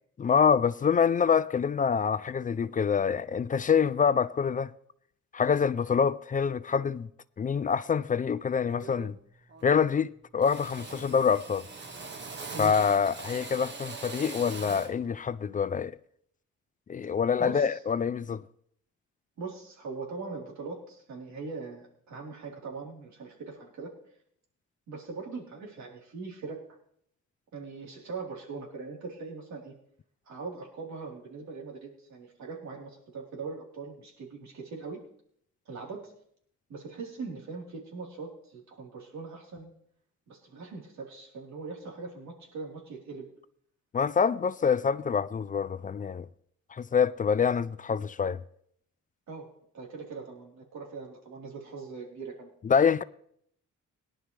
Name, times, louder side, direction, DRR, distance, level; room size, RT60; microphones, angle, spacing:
voice 1, 0.2-4.7 5.3-7.1 7.4-9.2 9.6-11.7 12.6-16.0 16.9-18.4 43.9-46.3 46.7-48.4 52.6-53.0, left 6 dB, 30° left, 0.4 m, -26 dB
Drill, 8.7-9.2 9.5-10.1 10.4-15.0, right 4 dB, 35° right, 1.4 m, -42 dB
voice 2, 17.4-17.8 19.4-23.9 24.9-26.6 27.5-29.7 30.3-35.0 35.7-36.1 36.7-39.7 40.3-43.3 49.3-49.5 49.7-52.5, right 4 dB, 65° right, 3.8 m, -41 dB
18.5 x 11.0 x 3.3 m
cardioid pair, 90°, 30 cm